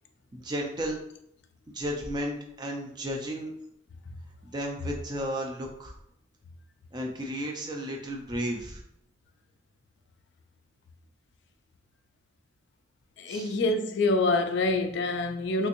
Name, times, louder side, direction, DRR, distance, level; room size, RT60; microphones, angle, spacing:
voice 1, 0.3-1.0 1.7-3.5 4.5-5.9 6.9-8.8 13.3-13.5, equal, 20° right, 0.4 m, -33 dB
voice 2, 13.2-15.7, left 2 dB, 70° left, 0.4 m, -26 dB
3.3 x 2.9 x 2.6 m
head